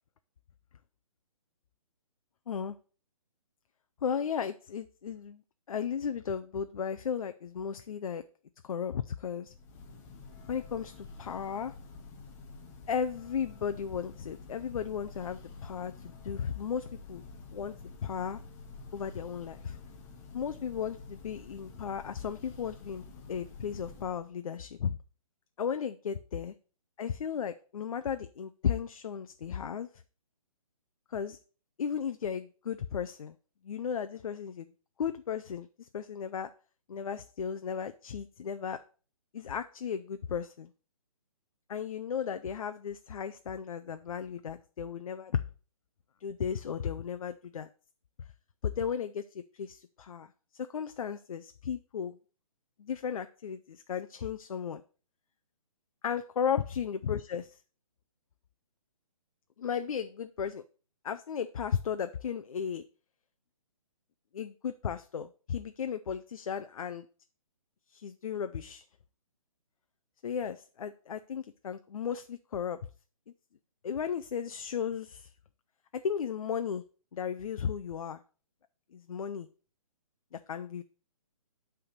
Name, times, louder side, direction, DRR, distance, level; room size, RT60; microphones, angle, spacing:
voice 1, 4.0-5.4 5.7-8.2 8.6-9.5 10.5-11.7 12.9-17.2 17.5-18.4 18.9-19.8 20.3-25.0 25.6-26.5 27.0-29.9 31.1-31.4 31.8-33.4 33.6-34.7 35.0-36.5 36.9-38.8 39.3-40.7 41.7-45.4 46.2-47.7 48.6-52.2 52.8-54.8 56.0-57.6 59.6-60.6 61.0-62.8 64.3-67.1 67.9-68.8 70.2-72.8 73.8-75.3 75.9-76.8 77.1-78.2 78.9-79.5 80.3-80.8, left 7 dB, 70° left, 9 dB, 0.6 m, -35 dB
Church bell, 9.4-24.4, left 4 dB, 15° left, 0.7 m, -49 dB
8.8 x 3.5 x 6.4 m, 0.38 s
hypercardioid pair, 160°, 19 cm